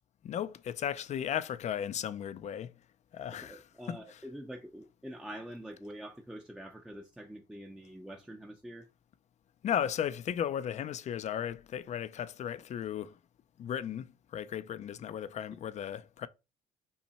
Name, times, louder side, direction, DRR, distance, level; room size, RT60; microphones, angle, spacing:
voice 1, 0.2-2.7 3.1-4.2 9.6-13.2 13.6-16.3, left 9 dB, 45° left, 0.4 m, -35 dB
voice 2, 3.3-8.9, equal, 5° right, 0.6 m, -45 dB
5.6 x 2.2 x 4.1 m
cardioid pair, 110°, 17 cm